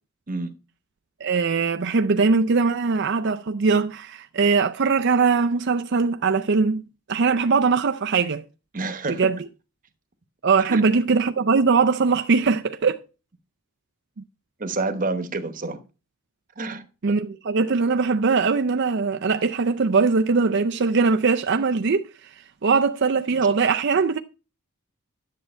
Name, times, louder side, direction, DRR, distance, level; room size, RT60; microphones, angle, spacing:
voice 1, 1.2-6.8 7.1-8.4 9.2-9.4 10.4-13.0 14.2-14.3 17.0-22.3 22.6-24.2, right 4 dB, 55° right, 0.5 m, -21 dB
voice 2, 8.7-9.3 10.7-10.8 14.6-15.8 16.6-16.9 23.4-23.5, right 3 dB, 40° right, 1.1 m, -28 dB
10.5 x 7.6 x 4.3 m
head